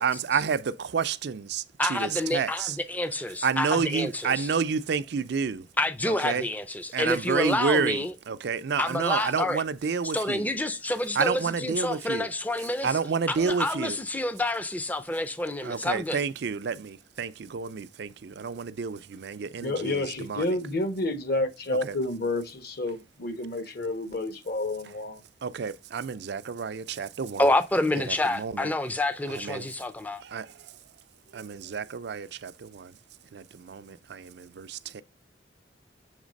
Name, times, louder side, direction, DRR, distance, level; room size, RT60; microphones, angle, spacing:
voice 1, 0.0-2.8 3.4-5.7 6.1-6.5 6.9-10.5 11.1-12.3 12.8-14.0 15.6-20.6 21.8-22.0 25.4-27.4 28.0-28.7 29.3-29.7 30.2-30.7 31.3-33.0 33.3-35.0, right 5 dB, 65° right, 0.4 m, -30 dB
voice 2, 1.8-4.5 5.8-8.1 8.8-9.6 10.1-12.9 13.3-16.2 27.4-30.2, left 1 dB, 10° left, 0.5 m, -28 dB
voice 3, 19.6-25.2, left 2 dB, 60° left, 1.2 m, -30 dB
7.3 x 3.3 x 5.1 m
head